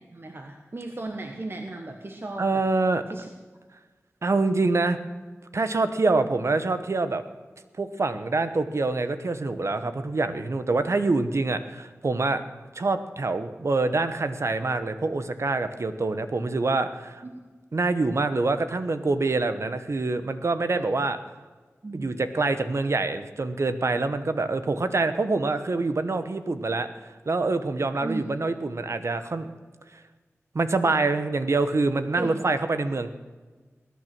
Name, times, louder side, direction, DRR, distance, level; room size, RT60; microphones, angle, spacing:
voice 1, 0.1-2.6 3.1-3.3 17.2-17.3 20.7-20.9 21.8-22.2 22.8-22.9 28.0-28.2 32.1-32.4, right 2 dB, 45° right, 3 dB, 1.3 m, -36 dB
voice 2, 2.4-3.0 4.2-5.0 5.5-7.2 7.8-12.4 12.7-17.2 17.7-21.2 21.9-26.9 27.3-29.5 30.5-33.1, right 3 dB, 65° right, 10 dB, 1.0 m, -25 dB
20.5 x 9.5 x 6.0 m, 1.4 s
cardioid pair, 45°, 5 cm